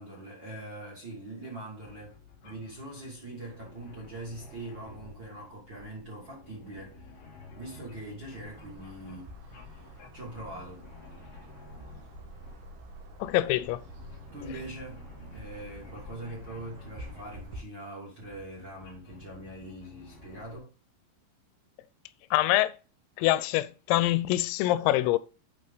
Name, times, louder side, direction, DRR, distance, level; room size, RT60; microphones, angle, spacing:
voice 1, 0.0-2.2 2.4-7.0 7.6-9.9 10.1-10.8 14.3-20.7, right 1 dB, 30° right, 2.6 m, -43 dB
sound 1, 1.8-17.6 18.1-20.6, left 3 dB, 55° left, 1.6 m, -51 dB
sound 2, 8.4-17.6, right 1 dB, 70° right, 1.9 m, -48 dB
voice 2, 13.2-13.8 22.3-22.7 23.2-25.2, left 16 dB, 90° left, 3.3 m, -25 dB
8.4 x 5.4 x 4.0 m
omnidirectional pair, 5.9 m